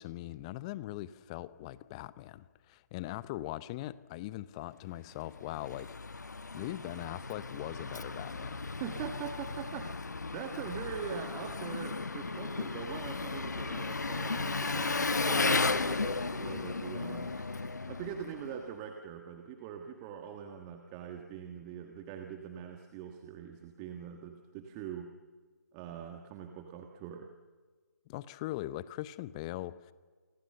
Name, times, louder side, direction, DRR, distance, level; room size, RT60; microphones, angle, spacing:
voice 1, 0.0-5.9 6.5-8.6 28.1-29.9, left 16 dB, 20° left, 17 dB, 0.8 m, -41 dB
Engine, 5.1-18.7, left 3 dB, 75° left, 1.1 m, -35 dB
voice 2, 8.8-17.3 17.9-25.1 25.7-27.3, right 8 dB, 20° right, 4 dB, 1.6 m, -43 dB
28.5 x 25.5 x 6.8 m, 1.5 s
figure-of-eight pair, 150°, 9 cm